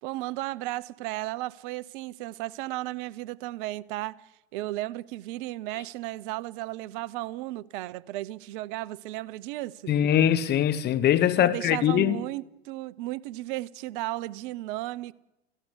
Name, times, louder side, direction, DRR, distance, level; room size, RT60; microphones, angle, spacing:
voice 1, 0.0-9.9 11.4-15.1, right 17 dB, 55° right, 1.1 m, -34 dB
voice 2, 9.9-12.2, left 10 dB, 30° left, 1.5 m, -22 dB
28.5 x 16.5 x 8.3 m
hypercardioid pair, 115°, 31 cm